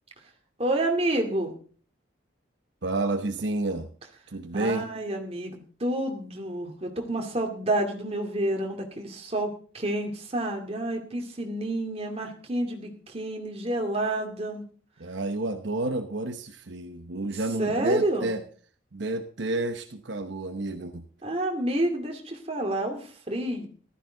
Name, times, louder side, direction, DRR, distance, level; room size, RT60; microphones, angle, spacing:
voice 1, 0.6-1.5 4.5-14.6 17.3-18.4 21.2-23.7, right 1 dB, 30° right, 3 dB, 2.2 m, -29 dB
voice 2, 2.8-3.9 4.3-4.9 15.0-18.4 18.9-21.1, right 2 dB, 70° right, 7 dB, 0.9 m, -30 dB
15.0 x 12.5 x 3.8 m, 0.43 s
head